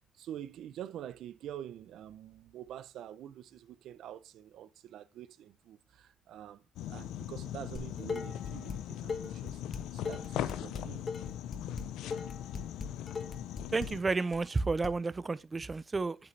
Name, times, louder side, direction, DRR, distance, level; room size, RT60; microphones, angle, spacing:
voice 1, 0.1-9.6 9.9-11.0 11.7-11.8, right 11 dB, 80° right, 0.5 m, -46 dB
sound 1, 6.8-14.0, left 11 dB, 90° left, 0.5 m, -40 dB
Dishes pots and pans, 7.7-8.8 9.1-14.9, left 4 dB, 40° left, 1.5 m, -39 dB
voice 2, 13.7-16.2, right 3 dB, 25° right, 0.5 m, -31 dB
8.3 x 8.0 x 3.2 m
cardioid pair, 90°, 0 cm